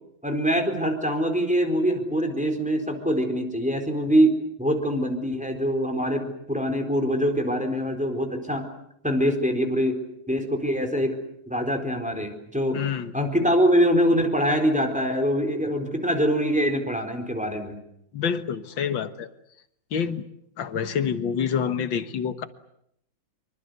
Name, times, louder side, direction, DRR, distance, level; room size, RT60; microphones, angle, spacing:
voice 1, 0.2-8.6 9.0-10.0 10.3-11.2 11.5-12.8 13.1-17.8, equal, 5° right, 5 dB, 4.1 m, -24 dB
voice 2, 12.7-13.1 18.1-19.3 19.9-20.2 20.6-22.4, left 7 dB, 70° left, 10 dB, 2.2 m, -27 dB
25.5 x 24.5 x 8.1 m, 0.74 s
omnidirectional pair, 2.1 m